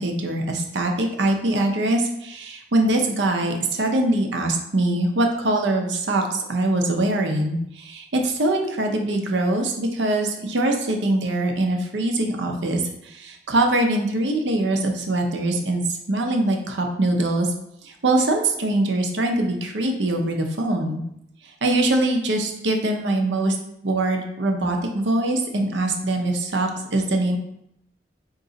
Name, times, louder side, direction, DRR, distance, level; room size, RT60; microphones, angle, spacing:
voice 1, 0.0-15.8 16.1-17.5 17.8-21.0 21.6-23.6 23.8-27.4, right 2 dB, 80° right, 3 dB, 0.7 m, -23 dB
3.9 x 3.0 x 3.9 m, 0.77 s
head